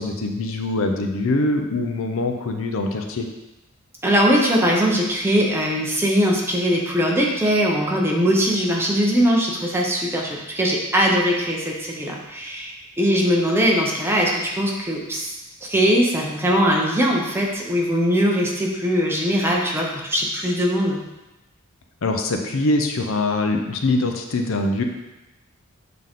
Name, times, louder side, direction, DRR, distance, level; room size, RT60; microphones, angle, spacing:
voice 1, 0.0-3.3 22.0-24.8, left 2 dB, 65° left, 4 dB, 0.6 m, -23 dB
voice 2, 4.0-15.3 15.7-21.0, equal, 10° right, -2 dB, 0.9 m, -21 dB
7.5 x 3.9 x 3.7 m, 1.0 s
head